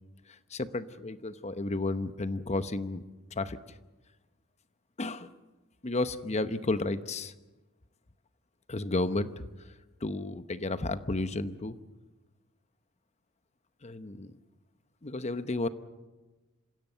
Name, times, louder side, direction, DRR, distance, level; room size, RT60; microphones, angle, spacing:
voice 1, 0.3-3.0 3.3-3.8 5.0-5.3 5.8-7.3 8.7-9.7 10.0-11.8 13.8-14.4 15.0-15.7, left 2 dB, 35° left, 12 dB, 0.9 m, -32 dB
27.0 x 16.5 x 8.0 m, 1.2 s
head